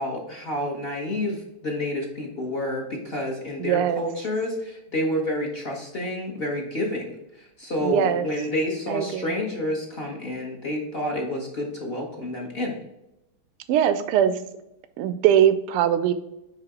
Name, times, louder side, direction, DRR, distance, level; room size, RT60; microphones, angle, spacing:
voice 1, 0.0-12.8, left 1 dB, 35° left, 0 dB, 1.0 m, -29 dB
voice 2, 3.6-4.0 7.8-8.3 8.9-9.3 13.7-14.4 15.0-16.1, right 10 dB, 90° right, 11 dB, 1.6 m, -21 dB
9.1 x 3.5 x 3.7 m, 0.88 s
omnidirectional pair, 2.4 m